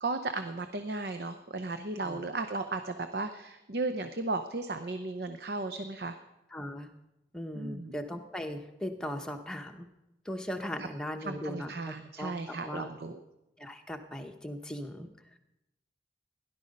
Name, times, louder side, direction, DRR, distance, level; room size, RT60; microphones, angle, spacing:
voice 1, 0.0-6.2 7.5-8.0 10.8-10.9 11.2-13.2, right 3 dB, 65° right, 8 dB, 0.7 m, -35 dB
voice 2, 6.5-6.9 7.3-9.9 10.3-12.9 13.6-15.1, equal, 5° left, 4 dB, 0.9 m, -38 dB
17.0 x 11.5 x 5.3 m, 0.93 s
head